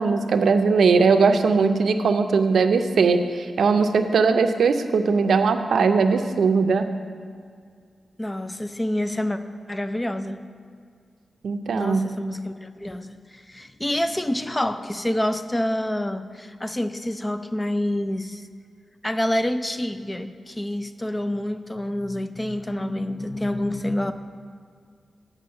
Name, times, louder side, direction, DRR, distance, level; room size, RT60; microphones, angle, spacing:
voice 1, 0.0-6.9 11.4-12.1, right 4 dB, 85° right, 8 dB, 0.5 m, -20 dB
voice 2, 8.2-9.4 9.7-10.4 11.8-18.4 19.0-24.1, left 1 dB, 15° left, 10 dB, 0.4 m, -27 dB
7.9 x 6.0 x 6.6 m, 2.1 s
wide cardioid pair, 130°, 0 cm